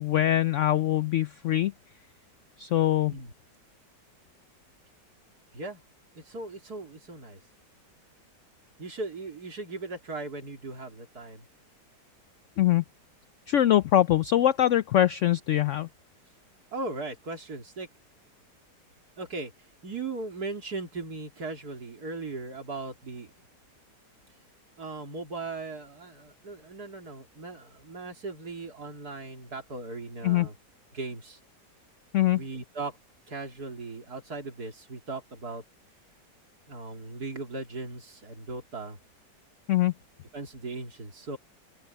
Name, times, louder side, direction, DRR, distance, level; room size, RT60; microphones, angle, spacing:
voice 1, 0.0-1.7 2.6-3.2 12.6-12.8 13.5-15.9 30.2-30.5 32.1-32.4 39.7-39.9, left 12 dB, 85° left, 0.6 m, -23 dB
voice 2, 6.2-7.4 8.8-11.5 16.7-17.9 19.2-19.5 19.8-23.3 24.8-30.6 30.9-31.4 32.3-33.0 33.3-35.6 36.7-39.0 40.3-41.4, right 3 dB, 60° right, 3.7 m, -38 dB
open air
omnidirectional pair, 1.9 m